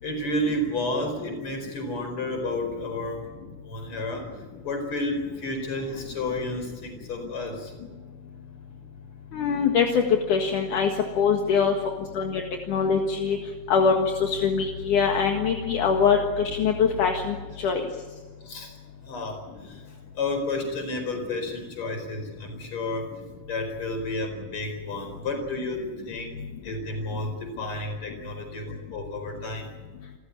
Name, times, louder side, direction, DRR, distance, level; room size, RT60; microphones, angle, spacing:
voice 1, 0.0-3.2 3.6-7.8 18.3-23.2 23.4-29.7, left 2 dB, 40° left, 5 dB, 5.4 m, -31 dB
voice 2, 9.3-10.0 10.3-10.9 11.2-11.7 12.1-12.4 12.7-13.4 13.7-17.4 17.6-17.8, left 6 dB, 70° left, 2 dB, 3.2 m, -23 dB
29.0 x 14.5 x 9.8 m, 1.3 s
omnidirectional pair, 3.9 m